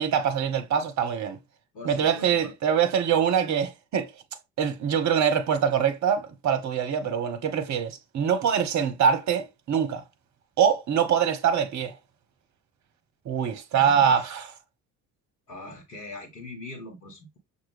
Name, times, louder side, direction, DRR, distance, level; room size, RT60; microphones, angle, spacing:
voice 1, 0.0-1.4 1.8-4.1 4.6-10.0 10.6-12.0 13.2-14.5, right 7 dB, 35° right, 0.9 m, -24 dB
voice 2, 1.7-2.5 13.7-14.4 15.5-17.4, left 2 dB, 80° left, 1.1 m, -42 dB
5.9 x 2.4 x 3.3 m
figure-of-eight pair, 50°, 48 cm